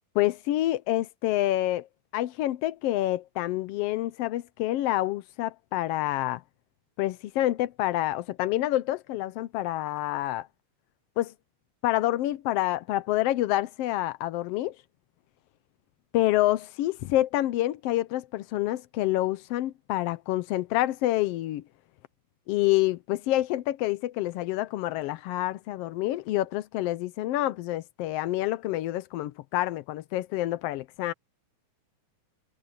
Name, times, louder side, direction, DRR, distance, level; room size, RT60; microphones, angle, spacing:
voice 1, 0.1-1.9 2.1-6.4 7.0-10.5 11.2-11.3 11.8-14.8 16.1-21.6 22.5-31.1, left 15 dB, 85° left, 1.3 m, -27 dB
omnidirectional pair, 3.5 m